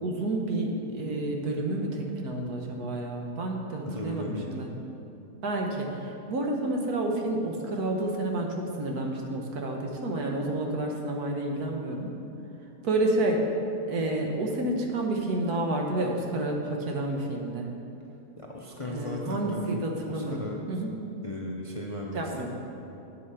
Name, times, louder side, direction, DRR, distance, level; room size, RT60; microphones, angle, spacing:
voice 1, 0.0-4.7 5.4-12.1 12.8-13.4 13.9-17.7 18.9-20.4 20.7-20.9 22.1-22.5, right 2 dB, 70° right, 1 dB, 1.5 m, -30 dB
voice 2, 3.8-4.7 18.4-19.6 20.1-20.6 21.2-22.5, left 1 dB, 55° left, -1 dB, 0.3 m, -36 dB
8.5 x 8.0 x 5.7 m, 2.8 s
omnidirectional pair, 1.8 m